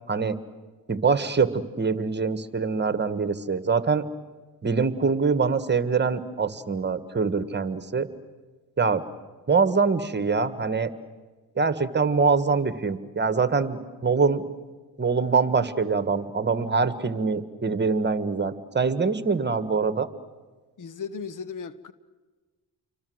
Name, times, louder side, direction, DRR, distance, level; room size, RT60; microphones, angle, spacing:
voice 1, 0.9-4.0 4.6-8.1 8.8-9.1 9.5-10.9 11.6-14.4 15.0-20.1, right 4 dB, 30° right, 1.7 m, -24 dB
voice 2, 20.8-21.9, left 6 dB, 55° left, 1.3 m, -36 dB
28.5 x 24.0 x 8.0 m
cardioid pair, 75°, 37 cm